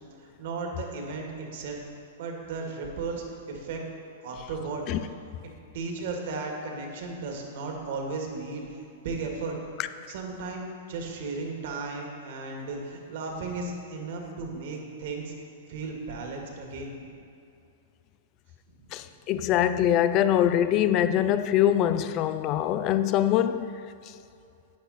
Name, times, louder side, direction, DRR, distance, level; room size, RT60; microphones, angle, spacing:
voice 1, 0.2-1.8 2.2-3.8 4.2-4.8 5.7-9.6 10.1-15.3 15.7-17.1 18.8-19.0, right 3 dB, 65° right, 2.0 m, -35 dB
voice 2, 18.9-23.7, left 11 dB, 40° left, 0.5 m, -23 dB
11.5 x 8.5 x 4.2 m
hypercardioid pair, 125°, 0 cm